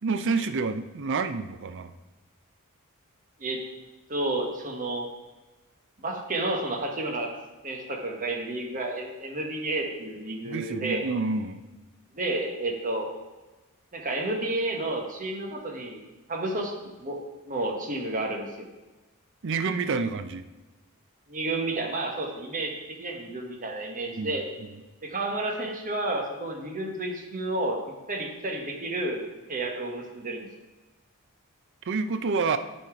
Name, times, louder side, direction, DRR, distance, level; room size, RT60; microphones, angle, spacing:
voice 1, 0.0-1.9 10.4-11.7 19.4-20.4 24.2-24.7 31.9-32.6, right 4 dB, 55° right, 11 dB, 0.5 m, -28 dB
voice 2, 4.1-5.1 6.0-7.3 7.6-11.1 12.1-13.1 13.9-16.0 16.3-17.2 17.4-18.7 21.3-22.7 23.0-24.4 25.0-27.8 28.1-29.2 29.5-30.5, right 2 dB, 35° right, 2 dB, 1.2 m, -31 dB
10.5 x 4.4 x 4.8 m, 1.2 s
head